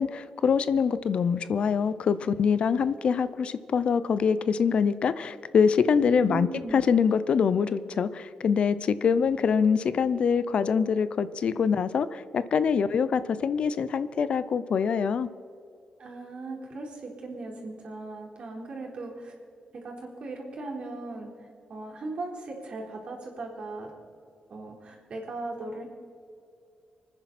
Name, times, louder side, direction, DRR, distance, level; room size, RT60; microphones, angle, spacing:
voice 1, 0.0-6.5 6.7-15.3, left 6 dB, 60° left, 15 dB, 0.6 m, -24 dB
voice 2, 6.0-6.8 16.0-19.3 19.7-23.9 24.5-25.9, right 3 dB, 55° right, -1 dB, 4.0 m, -38 dB
26.0 x 9.9 x 4.3 m, 2.6 s
cardioid pair, 95°, 2 cm